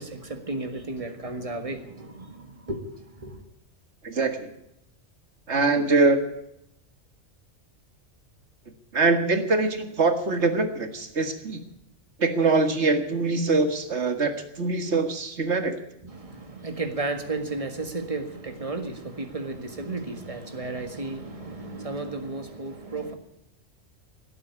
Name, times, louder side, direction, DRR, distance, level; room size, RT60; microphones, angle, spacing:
voice 1, 0.0-3.4 16.0-23.1, right 2 dB, 30° right, 1.9 m, -33 dB
voice 2, 4.0-4.5 5.5-6.2 8.9-11.6 12.2-15.7, right 3 dB, 65° right, 2.0 m, -23 dB
16.5 x 8.7 x 9.7 m
omnidirectional pair, 1.2 m